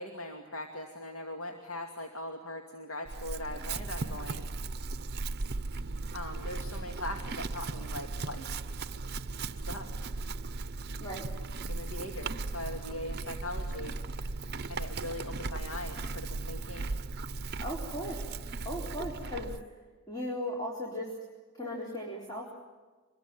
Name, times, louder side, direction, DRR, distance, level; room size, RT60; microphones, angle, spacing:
voice 1, 0.0-4.5 6.1-8.6 9.7-9.9 11.6-14.0 14.7-16.9, left 1 dB, 70° left, 3 dB, 2.4 m, -40 dB
Chewing mastication / Livestock farm animals working animals, 3.0-19.6, right 3 dB, 50° right, 0.8 m, -37 dB
voice 2, 17.6-18.3 18.6-19.6 20.1-21.1 21.5-22.6, left 1 dB, 20° left, -2 dB, 4.1 m, -37 dB
25.5 x 22.0 x 9.1 m, 1.3 s
head